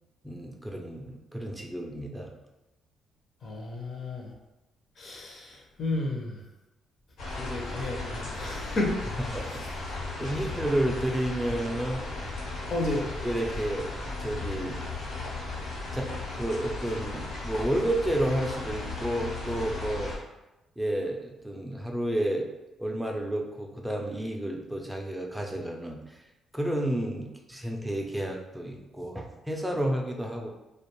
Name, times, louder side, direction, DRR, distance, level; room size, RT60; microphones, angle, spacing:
voice 1, 0.2-2.3 9.3-9.7 10.2-12.0 13.2-13.9 14.2-14.9 15.9-20.1 20.8-22.5 22.8-26.2 26.5-30.5, right 1 dB, 10° right, 1 dB, 0.4 m, -31 dB
voice 2, 3.4-4.3 5.0-6.4 7.4-9.1 12.7-13.1, left 2 dB, 50° left, 0 dB, 0.6 m, -32 dB
sound 1, 7.2-20.2, left 2 dB, 80° left, 1.0 m, -36 dB
2.5 x 2.2 x 3.0 m, 0.99 s
cardioid pair, 90°, 0 cm